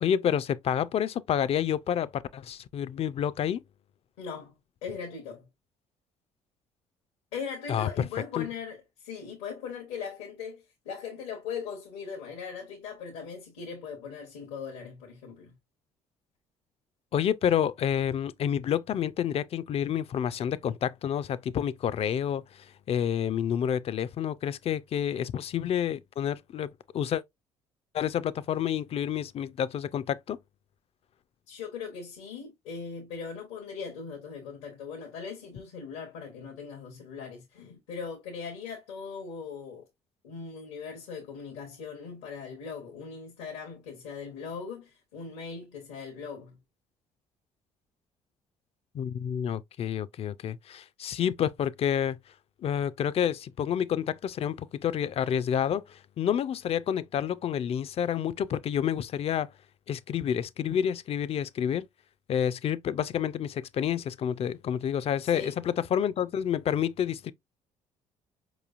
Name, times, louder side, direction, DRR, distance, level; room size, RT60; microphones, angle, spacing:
voice 1, 0.0-3.6 7.7-8.1 8.4-8.5 17.1-26.7 26.9-27.2 27.9-30.4 48.9-52.2 52.6-59.5 59.9-61.9 62.3-67.3, left 9 dB, 50° left, 0.4 m, -29 dB
voice 2, 4.2-4.5 4.8-5.5 7.3-15.6 31.5-39.9 40.2-46.6 65.2-65.6, left 6 dB, 90° left, 1.0 m, -39 dB
4.8 x 3.0 x 2.4 m
hypercardioid pair, 60°, 13 cm